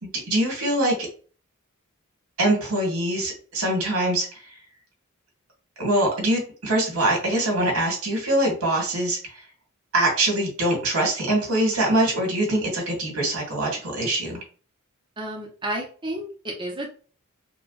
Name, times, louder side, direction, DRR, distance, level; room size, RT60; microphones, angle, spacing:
voice 1, 0.0-0.9 2.4-4.3 5.8-9.2 9.9-14.4, right 1 dB, 85° right, -1 dB, 2.4 m, -23 dB
voice 2, 15.2-16.9, right 1 dB, 25° right, -1 dB, 0.9 m, -31 dB
4.6 x 2.4 x 4.1 m, 0.39 s
head